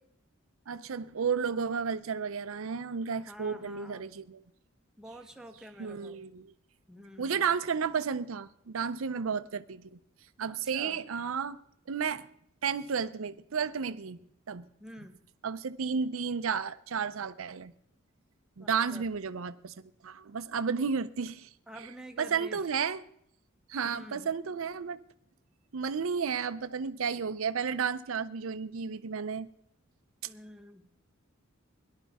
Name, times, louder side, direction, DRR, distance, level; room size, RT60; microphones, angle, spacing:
voice 1, 0.7-4.4 5.8-6.5 7.2-10.0 10.4-11.6 11.9-12.3 12.6-14.2 14.5-14.7 15.4-17.7 18.6-21.5 22.2-23.0 23.7-25.0 25.7-29.5, right 6 dB, 75° right, 0.5 m, -32 dB
voice 2, 3.1-4.0 5.0-6.2 6.9-7.4 10.5-11.0 14.8-15.2 18.6-19.1 21.7-22.6 23.8-24.3 30.2-30.8, equal, 5° right, 1.0 m, -48 dB
17.5 x 11.5 x 3.5 m
head